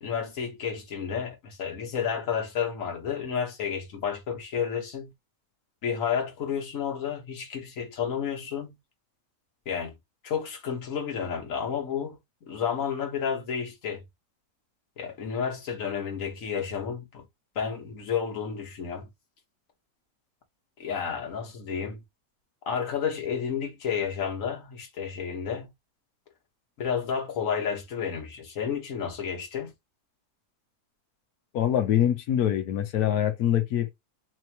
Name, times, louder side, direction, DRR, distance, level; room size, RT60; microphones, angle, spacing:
voice 1, 0.0-5.1 5.8-8.8 9.6-9.9 10.2-14.0 15.0-17.3 17.5-19.1 20.8-22.0 22.6-25.7 26.8-29.7, left 7 dB, 55° left, 1.5 m, -31 dB
voice 2, 31.5-33.9, left 10 dB, 70° left, 1.2 m, -24 dB
4.2 x 2.9 x 2.8 m
omnidirectional pair, 1.8 m